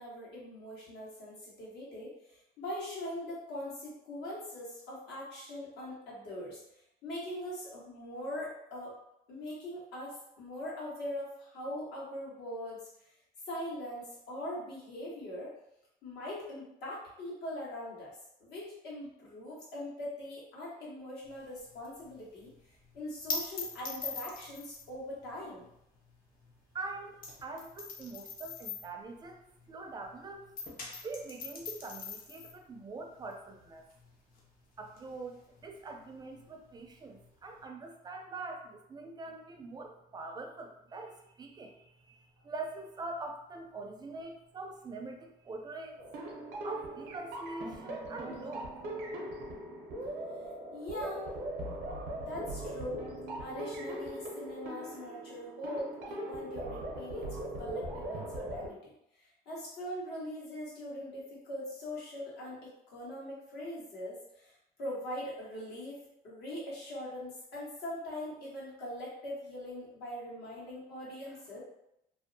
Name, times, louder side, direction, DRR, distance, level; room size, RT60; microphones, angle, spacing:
voice 1, 0.0-6.6 7.0-8.9 9.3-12.9 13.5-15.5 16.0-18.1 18.4-22.5 22.9-25.7 50.7-51.4 52.3-53.0 53.4-64.5 64.8-71.6, left 1 dB, 75° left, -6 dB, 1.2 m, -41 dB
sound 1, 21.3-30.1 30.4-37.6, left 4 dB, 55° left, 0.6 m, -43 dB
voice 2, 26.7-30.5 31.0-33.8 34.8-46.0 46.6-48.7, right 3 dB, 25° right, 4 dB, 0.4 m, -44 dB
sound 2, 46.0-58.7, right 1 dB, 85° right, 0.6 m, -40 dB
2.6 x 2.1 x 2.6 m, 0.81 s
cardioid pair, 110°, 17 cm